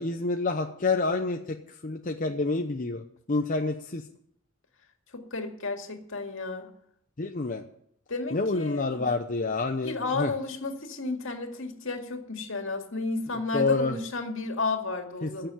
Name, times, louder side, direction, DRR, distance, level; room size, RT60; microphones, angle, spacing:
voice 1, 0.0-4.0 7.2-7.6 8.3-10.3 13.5-14.0 15.2-15.5, left 3 dB, 40° left, 4 dB, 0.8 m, -28 dB
voice 2, 5.1-6.7 8.1-9.1 9.8-15.5, left 3 dB, 65° left, 4 dB, 2.3 m, -32 dB
16.0 x 6.9 x 9.2 m, 0.72 s
head